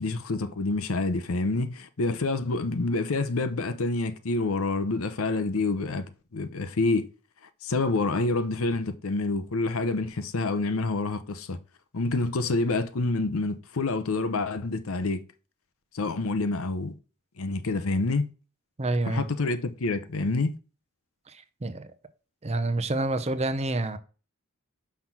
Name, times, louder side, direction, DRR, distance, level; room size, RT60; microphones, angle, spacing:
voice 1, 0.0-7.1 7.6-11.6 11.9-15.2 15.9-16.9 17.4-18.3 19.1-20.6, left 3 dB, 70° left, 0.7 m, -27 dB
voice 2, 18.8-19.3 21.3-21.9 22.4-24.0, right 2 dB, 30° right, 0.6 m, -28 dB
5.8 x 3.8 x 5.9 m
head